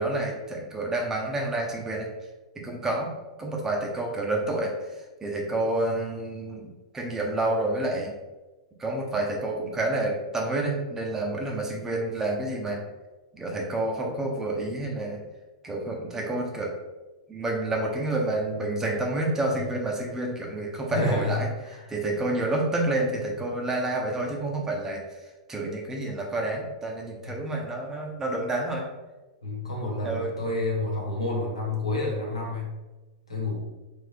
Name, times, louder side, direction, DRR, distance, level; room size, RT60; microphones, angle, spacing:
voice 1, 0.0-2.1 2.6-3.1 3.4-8.1 8.8-12.8 13.3-15.2 15.6-16.7 17.3-21.5 21.9-25.0 25.5-28.8 30.0-30.3, right 2 dB, 15° right, 0 dB, 0.9 m, -29 dB
voice 2, 20.9-21.9 27.3-27.4 29.4-32.7 33.3-33.6, left 2 dB, 85° left, -3 dB, 1.4 m, -29 dB
3.6 x 3.6 x 3.3 m, 1.1 s
figure-of-eight pair, 95°, 3 cm